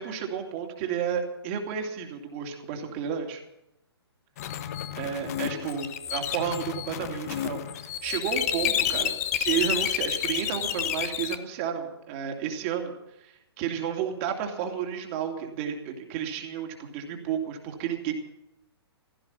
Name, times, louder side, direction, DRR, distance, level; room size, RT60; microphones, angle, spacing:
voice 1, 0.0-3.4 5.0-7.6 8.0-9.1 9.4-18.1, right 8 dB, 30° right, 3 dB, 2.7 m, -32 dB
sound 1, 4.4-11.4, left 10 dB, 35° left, 1.1 m, -30 dB
16.0 x 15.0 x 5.7 m, 0.85 s
figure-of-eight pair, 125°, 14 cm